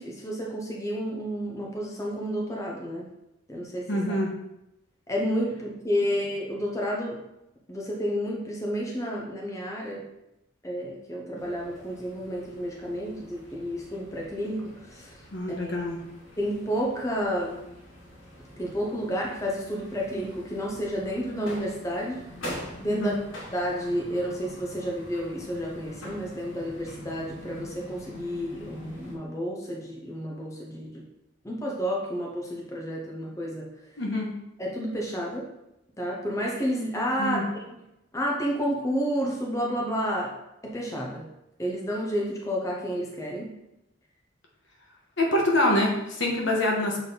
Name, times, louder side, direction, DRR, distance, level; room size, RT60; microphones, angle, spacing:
voice 1, 0.0-3.1 3.5-4.2 5.1-7.2 7.7-10.0 10.6-15.2 15.5-15.8 16.4-17.6 18.6-22.2 22.8-23.1 23.5-31.0 31.4-33.7 34.6-35.5 36.0-37.5 38.1-40.3 40.6-41.3 41.6-43.5, equal, 15° left, -2 dB, 0.8 m, -30 dB
voice 2, 3.9-4.3 15.3-16.0 23.0-23.1 34.0-34.3 37.2-37.4 45.2-47.0, left 1 dB, 65° left, -1 dB, 1.4 m, -25 dB
sound 1, 11.3-29.2, equal, 85° left, 2.1 m, -44 dB
6.9 x 4.2 x 3.8 m, 0.89 s
head